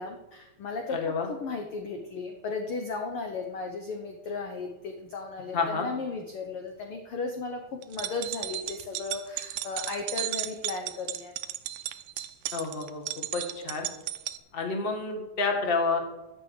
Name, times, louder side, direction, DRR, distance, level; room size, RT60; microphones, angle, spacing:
voice 1, 0.0-11.4, left 4 dB, 65° left, 3 dB, 1.5 m, -35 dB
voice 2, 0.9-1.3 5.5-5.9 12.5-13.0 13.3-13.9 14.5-16.0, left 4 dB, 25° left, 3 dB, 1.5 m, -29 dB
sound 1, 7.8-14.4, right 14 dB, 80° right, 2.0 m, -35 dB
12.5 x 6.1 x 8.2 m, 1.0 s
omnidirectional pair, 3.7 m